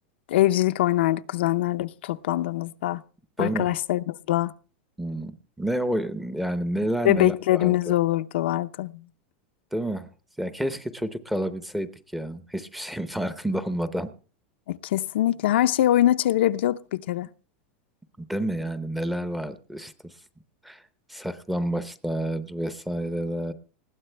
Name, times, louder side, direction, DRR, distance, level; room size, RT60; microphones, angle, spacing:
voice 1, 0.3-3.0 3.4-4.5 7.0-9.0 14.7-17.3, left 14 dB, 75° left, 0.6 m, -23 dB
voice 2, 3.4-3.7 5.0-7.9 9.7-10.1 10.4-14.1 18.2-20.2 20.6-20.8 21.1-23.5, right 1 dB, ahead, 0.7 m, -29 dB
20.0 x 15.5 x 3.3 m
supercardioid pair, 175°, 6 cm